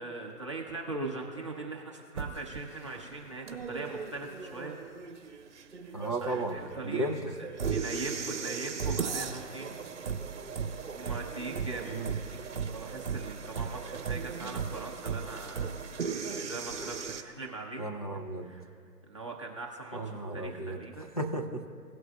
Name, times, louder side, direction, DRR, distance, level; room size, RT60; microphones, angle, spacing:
voice 1, 0.0-4.8 5.8-9.8 10.9-12.4 12.7-17.8 18.4-18.7 19.1-21.1, right 3 dB, 20° right, -3 dB, 0.7 m, -41 dB
sound 1, 2.2-17.2, right 6 dB, 45° right, 1.1 m, -37 dB
voice 2, 5.9-6.6 6.8-7.3 11.9-12.2 17.8-18.5 19.9-20.8 21.2-21.7, right 1 dB, 25° left, -1 dB, 0.6 m, -34 dB
18.0 x 8.0 x 2.3 m, 2.4 s
figure-of-eight pair, 155°, 48 cm